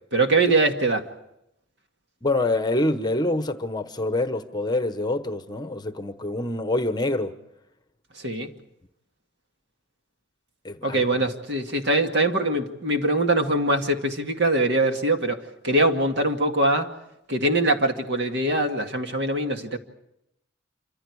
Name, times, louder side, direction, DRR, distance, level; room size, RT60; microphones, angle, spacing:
voice 1, 0.1-1.1 8.2-8.5 10.8-16.9 17.3-19.8, right 2 dB, 60° right, 2.2 m, -23 dB
voice 2, 2.2-7.3 10.6-11.0, left 2 dB, 20° left, 1.0 m, -26 dB
27.5 x 26.0 x 4.8 m
head